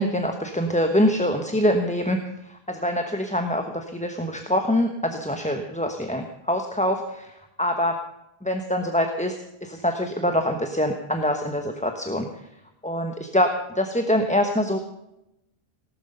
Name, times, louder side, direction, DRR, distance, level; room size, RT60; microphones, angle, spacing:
voice 1, 0.0-2.2 2.4-8.0 8.4-12.2 12.8-14.8, equal, 5° left, 5 dB, 1.1 m, -24 dB
18.5 x 12.0 x 5.6 m, 0.87 s
omnidirectional pair, 1.0 m